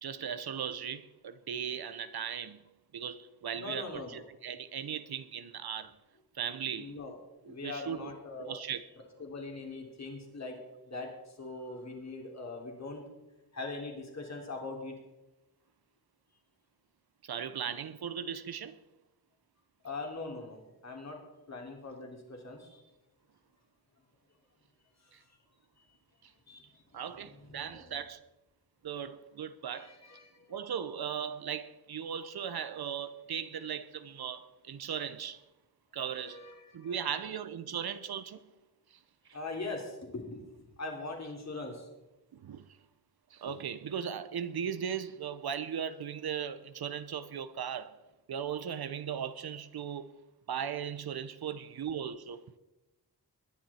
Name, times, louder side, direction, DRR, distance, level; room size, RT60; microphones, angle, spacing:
voice 1, 0.0-2.6 2.9-6.0 6.3-6.9 7.5-8.1 8.4-8.9 17.2-18.8 25.1-25.2 26.2-26.3 26.9-28.2 28.8-29.9 30.5-35.4 35.9-36.5 36.7-38.4 38.9-39.0 42.3-42.7 43.3-48.0 48.3-50.1 50.5-52.4, right 8 dB, 70° right, 0.7 m, -38 dB
voice 2, 3.6-4.2 6.8-7.1 7.5-8.6 9.2-10.6 10.9-13.0 13.5-14.9 19.8-21.2 21.5-22.8 25.0-25.2 26.5-26.8 27.5-28.0 29.7-30.5 36.1-37.1 39.3-41.9, left 3 dB, 45° left, 3.3 m, -42 dB
21.0 x 11.0 x 4.3 m
wide cardioid pair, 155°, 39 cm